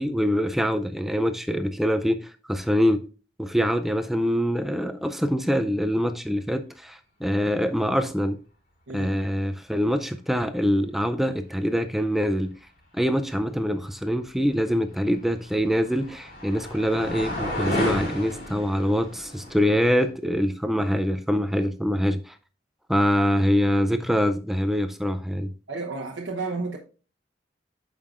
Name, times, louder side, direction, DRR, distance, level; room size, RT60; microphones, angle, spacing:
voice 1, 0.0-3.0 3.4-8.4 8.9-12.5 12.9-22.3 22.9-25.5, equal, ahead, 0.3 m, -24 dB
sound 1, 14.8-20.1, left 1 dB, 50° left, 3.4 m, -32 dB
voice 2, 25.7-26.8, right 3 dB, 80° right, 1.0 m, -31 dB
9.0 x 6.5 x 2.4 m
head